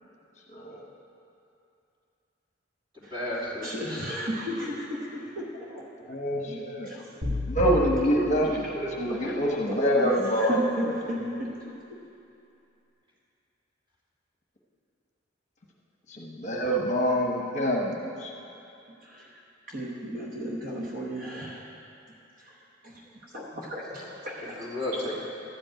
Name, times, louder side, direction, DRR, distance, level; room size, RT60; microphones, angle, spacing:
voice 1, 0.5-0.9 6.1-6.9 7.4-11.3 16.1-18.3, equal, 35° left, -1 dB, 1.0 m, -26 dB
voice 2, 2.9-4.1 24.4-25.1, left 1 dB, 25° right, -8 dB, 2.8 m, -34 dB
voice 3, 3.6-6.2 6.5-7.1 8.4-8.8 9.0-9.3 9.7-12.0 19.0-19.4 19.7-21.8 22.4-24.7, equal, 45° right, -3 dB, 1.1 m, -35 dB
sound 1, 7.2-9.3, left 2 dB, 65° right, 2.1 m, -33 dB
12.5 x 5.3 x 8.9 m, 2.7 s
head